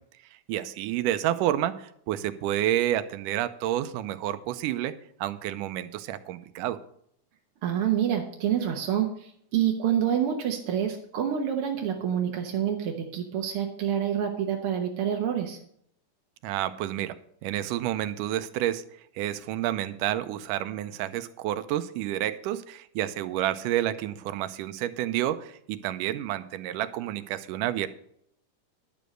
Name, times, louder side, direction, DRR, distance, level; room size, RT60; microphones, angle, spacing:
voice 1, 0.5-6.8 16.4-18.8 19.2-27.9, right 13 dB, 85° right, 12 dB, 2.2 m, -29 dB
voice 2, 7.6-15.6, right 9 dB, 65° right, 2 dB, 1.5 m, -27 dB
11.0 x 7.0 x 6.3 m, 0.69 s
omnidirectional pair, 3.7 m